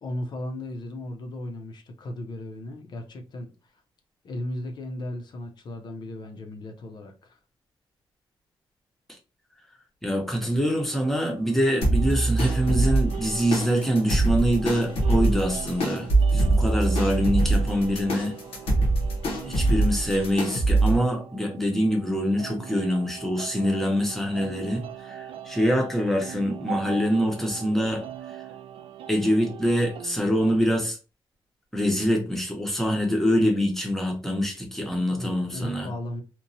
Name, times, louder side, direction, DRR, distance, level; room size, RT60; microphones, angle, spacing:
voice 1, 0.0-3.5 4.2-7.4 35.0-36.2, left 1 dB, 50° left, 0.5 m, -36 dB
voice 2, 10.0-18.3 19.4-28.1 29.1-31.0 31.7-35.9, equal, 5° left, 0.6 m, -25 dB
sound 1, 10.7-30.6, right 9 dB, 85° right, 0.4 m, -41 dB
sound 2, 11.8-21.0, right 2 dB, 85° left, 0.9 m, -24 dB
2.9 x 2.1 x 2.6 m
wide cardioid pair, 180°, 10 cm